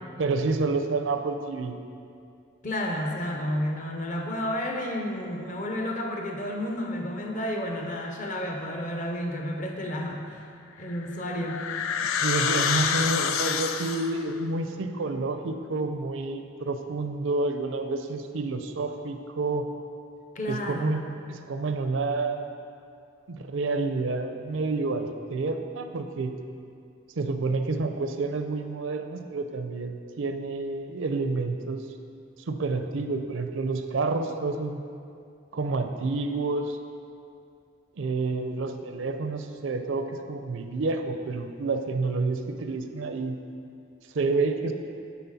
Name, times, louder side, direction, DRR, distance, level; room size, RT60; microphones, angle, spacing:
voice 1, 0.2-1.8 12.0-19.7 20.5-21.0 21.3-22.5 23.3-26.3 27.2-31.8 32.5-34.8 35.5-36.8 38.0-43.4 44.1-44.7, right 3 dB, 75° right, 6 dB, 0.5 m, -29 dB
voice 2, 2.6-10.4 10.8-11.7 20.3-21.1, left 1 dB, 40° left, 1 dB, 0.7 m, -31 dB
sound 1, 10.8-14.2, left 7 dB, 85° left, 0.4 m, -27 dB
9.9 x 4.1 x 4.1 m, 2.4 s
head